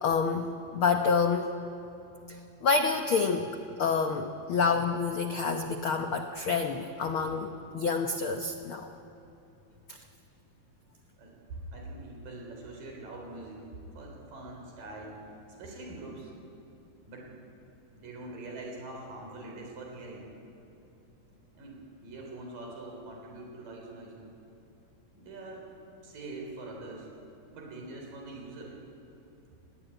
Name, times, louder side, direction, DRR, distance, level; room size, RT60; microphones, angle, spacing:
voice 1, 0.0-1.5 2.6-3.5 3.8-8.9 9.9-10.0, left 5 dB, 85° left, 5 dB, 1.1 m, -28 dB
voice 2, 11.2-13.7 14.0-15.3 15.6-16.3 17.1-17.3 18.0-20.3 21.6-24.2 25.1-25.7 26.0-27.1 27.5-28.8, right 2 dB, 80° right, 0 dB, 5.5 m, -43 dB
26.0 x 20.0 x 9.2 m, 3.0 s
omnidirectional pair, 3.9 m